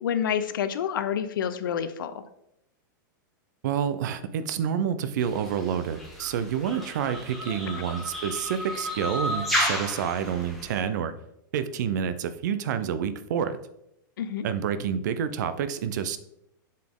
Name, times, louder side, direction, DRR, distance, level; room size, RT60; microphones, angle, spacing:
voice 1, 0.0-2.2 7.8-7.9 14.2-14.5, left 8 dB, 85° left, 12 dB, 0.6 m, -28 dB
voice 2, 3.6-11.1 11.5-13.6 14.4-16.2, right 8 dB, 60° right, 12 dB, 0.5 m, -28 dB
sound 1, 5.2-10.8, equal, ahead, 1.2 m, -32 dB
7.4 x 4.2 x 3.7 m, 0.80 s
supercardioid pair, 165°, 11 cm